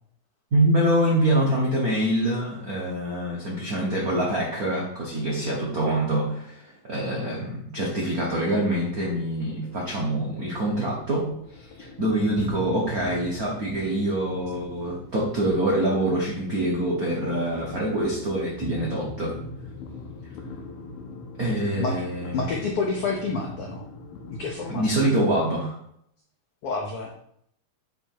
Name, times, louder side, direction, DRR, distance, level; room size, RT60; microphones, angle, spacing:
voice 1, 0.5-19.4 21.4-22.6 24.7-25.8, right 1 dB, 65° right, -3 dB, 0.9 m, -25 dB
sound 1, 8.9-25.0, left 3 dB, 90° left, 2.3 m, -41 dB
voice 2, 22.3-23.8 24.3-25.1 26.6-27.1, left 4 dB, 70° left, 0 dB, 1.4 m, -29 dB
9.0 x 3.6 x 4.6 m, 0.71 s
omnidirectional pair, 3.4 m